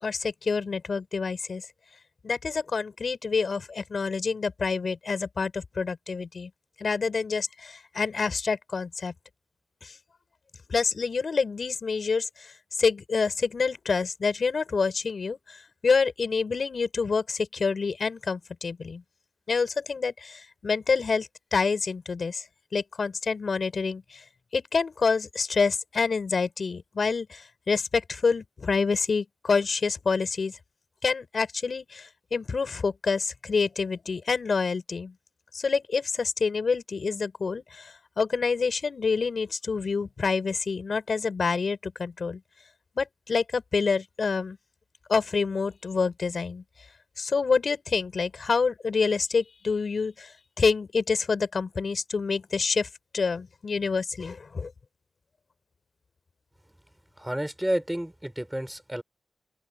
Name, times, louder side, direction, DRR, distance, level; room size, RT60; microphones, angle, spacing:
voice 1, 0.0-1.6 2.2-6.5 6.8-9.1 9.8-9.9 10.7-12.3 12.8-15.4 15.8-19.0 19.5-22.4 22.7-24.0 24.5-27.4 27.7-30.5 31.0-35.1 35.5-37.8 38.2-42.4 43.0-44.6 45.1-46.6 47.2-50.3 50.6-52.9 53.1-54.7, left 5 dB, 55° left, 5.2 m, -27 dB
voice 2, 57.2-59.0, right 1 dB, 5° right, 5.7 m, -30 dB
open air
wide cardioid pair, 85°, 0 cm